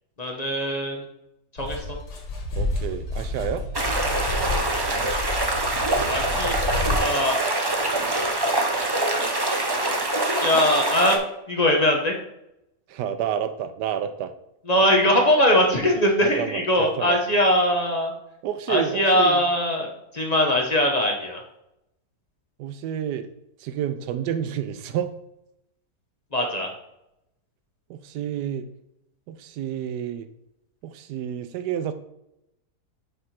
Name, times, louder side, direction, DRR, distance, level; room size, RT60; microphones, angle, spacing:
voice 1, 0.2-1.1 1.5-2.0 6.0-6.6 7.0-7.4 10.4-11.2 11.5-12.2 14.7-18.1 18.7-21.4 26.3-26.7, left 1 dB, 30° left, 0 dB, 1.1 m, -21 dB
sound 1, 1.6-7.0, left 2 dB, 80° left, 1.9 m, -30 dB
voice 2, 2.5-3.6 12.9-14.3 16.2-17.2 18.4-19.4 22.6-23.3 23.6-25.1 27.9-28.7 29.3-30.3 30.8-31.9, right 9 dB, 85° right, 10 dB, 1.2 m, -29 dB
sound 2, 3.7-11.2, right 2 dB, 30° right, 0.4 m, -24 dB
5.3 x 4.8 x 5.8 m, 0.85 s
omnidirectional pair, 1.7 m